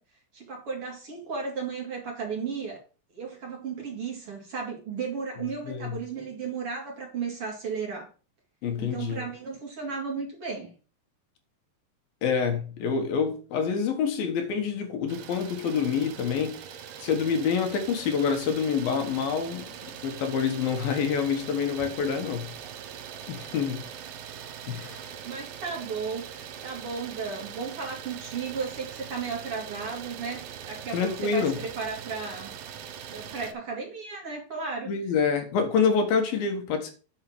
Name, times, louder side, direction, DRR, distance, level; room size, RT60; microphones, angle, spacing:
voice 1, 0.3-2.8 3.1-8.1 8.8-10.7 24.7-25.0 25.2-32.6 33.1-34.9, right 5 dB, 40° right, 3.0 m, -34 dB
voice 2, 8.6-9.2 12.2-16.6 17.0-19.7 20.0-22.5 23.3-23.8 24.7-25.1 30.9-31.6 34.9-36.9, left 6 dB, 70° left, 3.0 m, -27 dB
Idling, 15.1-33.5, right 9 dB, 70° right, 2.5 m, -42 dB
9.2 x 5.5 x 6.1 m
omnidirectional pair, 4.5 m